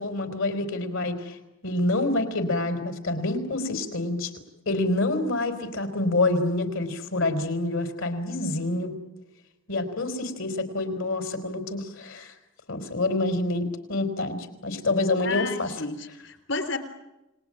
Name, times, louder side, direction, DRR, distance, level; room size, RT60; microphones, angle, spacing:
voice 1, 0.0-1.4 1.6-4.3 4.7-8.9 9.7-12.3 12.7-15.7, left 2 dB, 80° left, 9 dB, 4.1 m, -27 dB
voice 2, 15.2-16.8, left 3 dB, 65° left, 10 dB, 3.4 m, -31 dB
29.5 x 20.0 x 8.8 m, 0.97 s
head